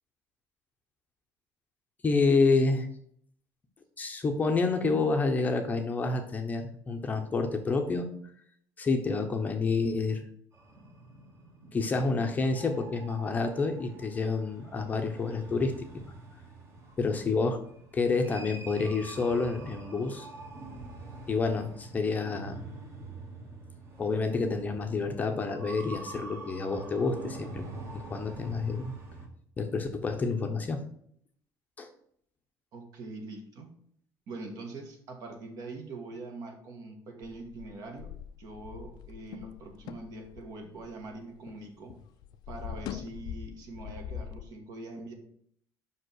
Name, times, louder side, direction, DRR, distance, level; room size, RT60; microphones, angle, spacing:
voice 1, 2.0-2.9 4.0-8.1 8.8-10.3 11.7-15.7 17.0-17.6 17.9-20.3 21.3-22.7 24.0-27.6 27.9-28.9 29.6-30.8 31.8-31.9, left 4 dB, 20° left, 5 dB, 0.8 m, -28 dB
sound 1, 10.5-29.3, right 3 dB, 35° right, 1.8 m, -46 dB
voice 2, 32.7-33.7 34.3-38.1 38.4-41.9 42.5-45.1, right 2 dB, 50° right, 4 dB, 1.7 m, -43 dB
sound 2, 37.2-41.6 41.9-44.4, left 9 dB, 60° left, 0.4 m, -42 dB
5.6 x 5.1 x 6.3 m, 0.67 s
cardioid pair, 160°, 8 cm